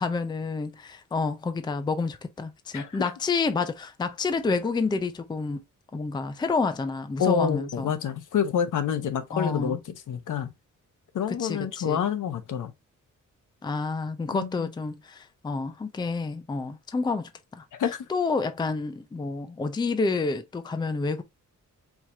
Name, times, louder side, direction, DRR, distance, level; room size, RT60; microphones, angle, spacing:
voice 1, 0.0-5.6 5.9-7.9 9.3-9.8 11.4-12.0 13.6-17.6 18.1-21.2, left 4 dB, 15° left, 0.4 m, -29 dB
voice 2, 2.7-3.1 7.2-10.5 11.1-12.7 14.3-14.7 17.7-18.0, left 8 dB, 75° left, 0.9 m, -28 dB
4.8 x 2.8 x 3.4 m
wide cardioid pair, 160°, 31 cm